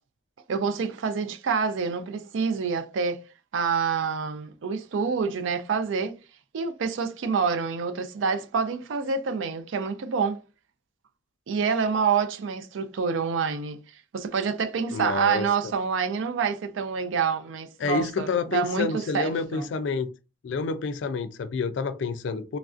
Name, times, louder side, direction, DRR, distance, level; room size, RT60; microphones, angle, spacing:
voice 1, 0.5-3.2 3.5-6.2 6.5-10.4 11.5-19.7, right 5 dB, 85° right, 0.4 m, -27 dB
voice 2, 14.9-15.5 17.8-20.1 20.4-22.6, left 4 dB, 75° left, 0.3 m, -28 dB
3.2 x 2.4 x 2.4 m
head